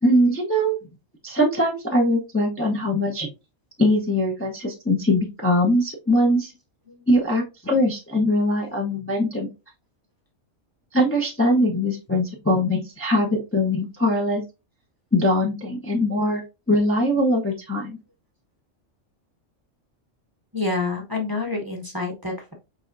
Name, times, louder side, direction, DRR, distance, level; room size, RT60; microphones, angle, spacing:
voice 1, 0.0-0.8 1.2-3.3 3.8-6.5 7.1-9.5 10.9-14.4 15.1-16.4 16.7-18.0, left 1 dB, 15° left, -1 dB, 0.6 m, -21 dB
voice 2, 20.5-22.5, left 3 dB, 20° right, 1 dB, 0.9 m, -28 dB
4.9 x 3.4 x 2.5 m, 0.27 s
omnidirectional pair, 1.3 m